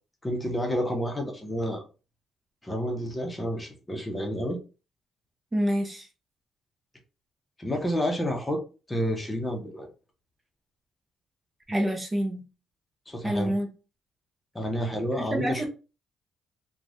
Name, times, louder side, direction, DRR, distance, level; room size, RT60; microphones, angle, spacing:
voice 1, 0.2-1.8 2.6-4.6 7.6-8.6 8.9-9.9 13.1-13.5 14.5-15.6, equal, 15° left, 2 dB, 0.8 m, -29 dB
voice 2, 5.5-6.1 11.7-12.4 13.2-13.7 15.2-15.6, equal, 20° right, 0 dB, 0.7 m, -27 dB
3.1 x 2.3 x 2.6 m, 0.33 s
cardioid pair, 90°, 0 cm